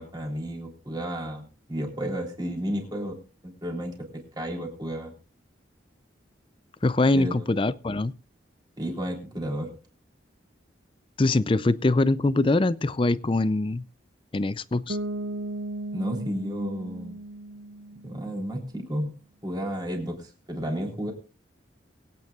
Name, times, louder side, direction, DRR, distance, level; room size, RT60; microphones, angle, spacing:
voice 1, 0.0-3.2 3.4-5.1 7.1-7.5 8.8-9.7 15.9-17.2 18.0-19.2 19.4-21.1, equal, 20° right, 0 dB, 3.6 m, -32 dB
voice 2, 6.8-8.1 11.2-13.9 14.3-15.0, left 2 dB, 25° left, 17 dB, 0.4 m, -23 dB
Bass guitar, 14.9-18.6, right 1 dB, 65° right, 0.6 m, -36 dB
23.0 x 9.3 x 2.4 m, 0.36 s
head